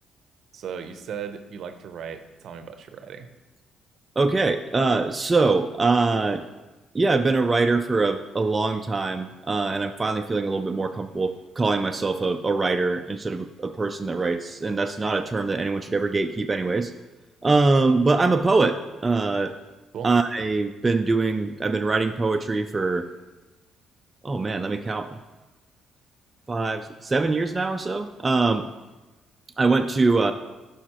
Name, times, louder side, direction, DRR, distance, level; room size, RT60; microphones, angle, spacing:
voice 1, 0.5-3.3 19.9-20.1, right 7 dB, 65° right, 9 dB, 0.6 m, -36 dB
voice 2, 4.2-6.4 6.9-16.9 17.4-19.6 20.0-23.1 24.2-25.2 26.5-28.7 29.6-30.3, right 3 dB, 25° right, 6 dB, 0.3 m, -23 dB
11.0 x 4.9 x 3.0 m, 1.1 s
cardioid pair, 85°, 0 cm